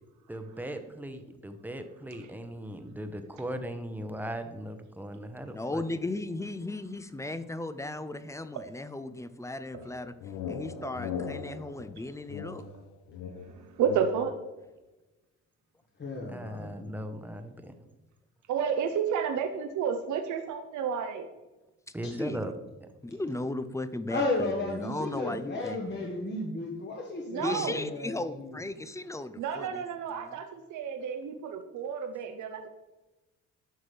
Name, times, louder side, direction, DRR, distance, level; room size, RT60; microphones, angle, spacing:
voice 1, 0.3-5.8 16.3-17.7 21.9-22.5 22.8-22.9, right 1 dB, 5° right, 7 dB, 0.9 m, -38 dB
voice 2, 5.5-10.1 10.5-12.6 22.1-22.5 23.0-26.1 27.4-29.8 30.2-30.3, left 2 dB, 10° left, 12 dB, 0.5 m, -36 dB
sound 1, 9.7-14.4, left 6 dB, 85° left, 0.8 m, -39 dB
voice 3, 13.6-14.3 18.5-21.3 27.3-27.8 29.4-32.7, right 7 dB, 75° right, 6 dB, 0.7 m, -31 dB
voice 4, 16.0-16.9 24.1-28.5, left 2 dB, 35° left, 0 dB, 1.3 m, -33 dB
9.4 x 6.0 x 3.3 m, 1.1 s
cardioid pair, 90°, 30 cm